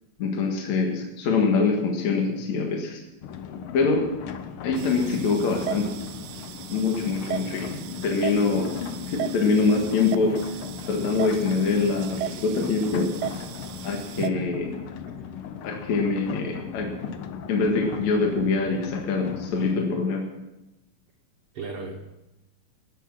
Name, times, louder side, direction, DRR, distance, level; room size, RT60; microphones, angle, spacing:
voice 1, 0.2-3.0 3.7-4.1 4.6-5.9 6.7-10.6 10.9-13.1 13.8-14.7 15.6-16.9 17.5-20.2, left 4 dB, 65° left, 1 dB, 2.9 m, -24 dB
sound 1, 3.2-19.8, left 7 dB, 85° left, 1.2 m, -38 dB
sound 2, 4.8-14.3, right 11 dB, 75° right, 1.9 m, -37 dB
voice 2, 14.2-14.5 15.1-15.4 21.5-22.1, right 4 dB, 50° right, 0 dB, 2.1 m, -36 dB
18.5 x 8.9 x 6.0 m, 0.95 s
omnidirectional pair, 3.7 m